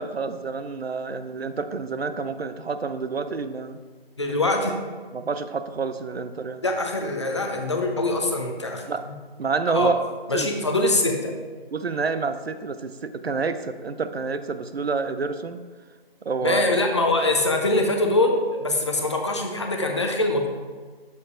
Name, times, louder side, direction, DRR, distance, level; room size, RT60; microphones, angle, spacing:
voice 1, 0.0-3.8 5.1-6.6 8.9-9.0 9.4-10.0 10.3-10.5 11.7-15.6 16.2-16.6, right 4 dB, 85° right, 10 dB, 0.6 m, -28 dB
voice 2, 4.2-4.7 6.6-9.1 9.7-9.9 10.3-11.3 16.4-20.5, left 2 dB, 30° left, 3 dB, 0.6 m, -23 dB
9.2 x 7.0 x 2.5 m, 1.5 s
figure-of-eight pair, 155°, 30 cm